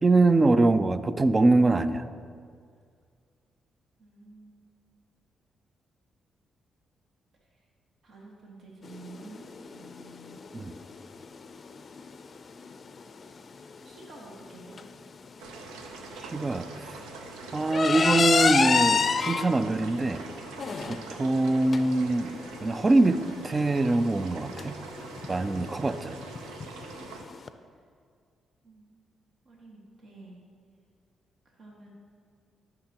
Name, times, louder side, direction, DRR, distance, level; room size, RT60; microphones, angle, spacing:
voice 1, 0.0-2.0 10.5-10.7 16.2-16.7 17.5-20.2 20.9-24.8 25.3-26.2, right 2 dB, 30° right, 12 dB, 0.5 m, -23 dB
voice 2, 4.0-4.6 7.5-7.6 8.0-10.4 13.8-14.8 20.6-20.9 28.6-28.9 29.4-30.4 31.4-31.9, right 2 dB, 60° right, -2 dB, 1.7 m, -49 dB
sound 1, 8.8-27.5, left 5 dB, 50° left, 0.5 m, -31 dB
sound 2, 15.4-27.2, right 4 dB, 85° right, 0.6 m, -44 dB
13.5 x 5.9 x 2.9 m, 2.1 s
hypercardioid pair, 50°, 0 cm